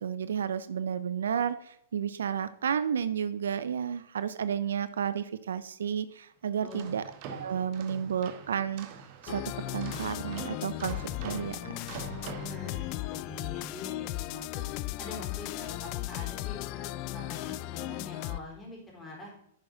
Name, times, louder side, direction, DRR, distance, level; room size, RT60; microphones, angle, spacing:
voice 1, 0.0-7.0 7.3-8.9 9.3-11.7, right 8 dB, 80° right, 14 dB, 0.4 m, -32 dB
sound 1, 6.5-13.2, right 6 dB, 45° right, 1.2 m, -45 dB
sound 2, 9.3-18.4, left 18 dB, 45° left, 0.3 m, -36 dB
voice 2, 12.4-14.7 15.0-19.3, left 2 dB, 15° left, -2 dB, 3.9 m, -44 dB
10.5 x 6.4 x 3.8 m, 0.72 s
hypercardioid pair, 125°, 0 cm